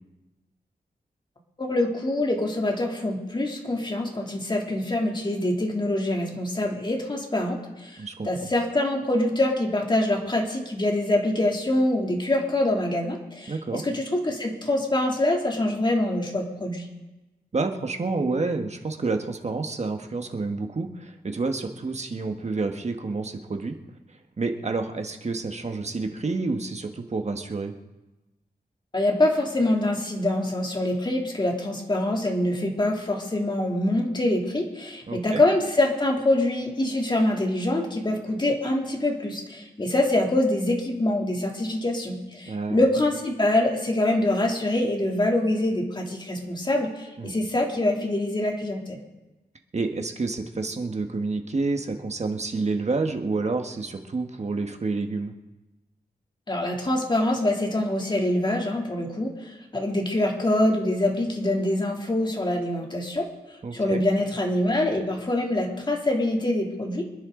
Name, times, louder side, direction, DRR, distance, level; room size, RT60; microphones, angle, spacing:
voice 1, 1.6-8.0 8.2-16.9 28.9-49.0 56.5-63.3 63.7-67.1, left 1 dB, 30° left, 0 dB, 2.9 m, -25 dB
voice 2, 8.0-8.5 13.5-13.8 17.5-23.8 24.4-27.7 35.1-35.4 42.5-42.9 47.2-47.3 49.7-55.3 63.6-64.0, right 3 dB, 40° right, 5 dB, 1.4 m, -29 dB
26.0 x 10.5 x 3.8 m, 1.1 s
wide cardioid pair, 100°, 17 cm